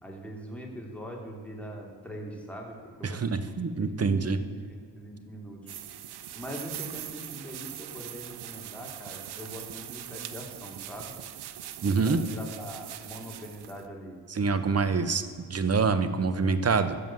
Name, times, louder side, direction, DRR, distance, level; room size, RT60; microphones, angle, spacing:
voice 1, 0.0-5.7 6.3-11.1 12.0-14.2, equal, 5° left, -1 dB, 3.4 m, -42 dB
voice 2, 3.0-4.4 11.8-12.2 14.3-15.2 15.5-17.0, right 4 dB, 40° right, 11 dB, 1.2 m, -25 dB
sound 1, 5.7-13.9, right 11 dB, 80° right, 0.8 m, -41 dB
13.0 x 7.3 x 7.7 m, 2.1 s
cardioid pair, 75°, 39 cm